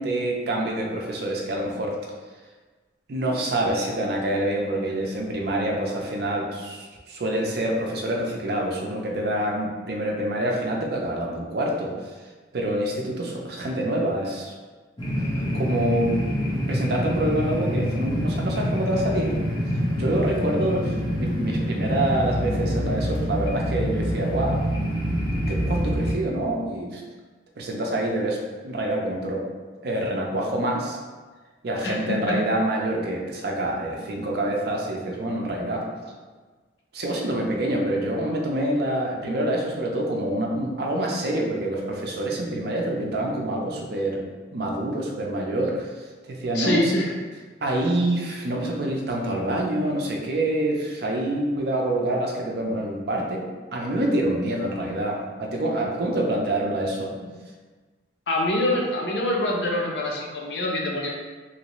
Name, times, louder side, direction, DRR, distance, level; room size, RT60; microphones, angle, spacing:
voice 1, 0.0-1.9 3.1-11.9 12.5-14.5 15.5-16.2 16.7-19.4 20.0-24.6 25.5-27.0 27.6-28.4 28.6-29.4 29.8-31.0 31.6-35.9 36.9-44.2 44.5-45.9 46.3-46.9 47.6-53.4 53.7-57.1, right 1 dB, 55° right, 0 dB, 0.5 m, -26 dB
sound 1, 15.0-26.1, equal, 25° left, 0.6 m, -26 dB
voice 2, 31.8-32.2 45.6-45.7 46.5-47.1 58.3-61.1, left 1 dB, 65° left, -2 dB, 0.6 m, -25 dB
3.1 x 2.7 x 3.0 m, 1.4 s
head